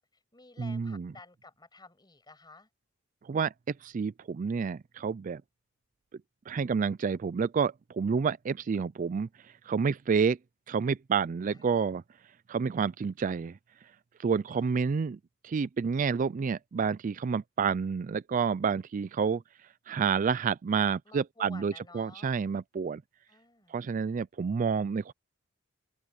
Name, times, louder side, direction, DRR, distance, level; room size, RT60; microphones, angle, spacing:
voice 1, 0.0-2.7 11.5-11.8 14.5-15.0 21.0-22.3 23.3-23.8, left 3 dB, 20° left, 6.4 m, -53 dB
voice 2, 0.6-1.1 3.2-3.5 3.8-5.4 6.5-9.3 9.7-10.4 10.7-12.0 12.5-13.6 14.2-19.4 19.9-23.0 23.7-25.1, right 6 dB, 40° right, 0.3 m, -29 dB
open air
head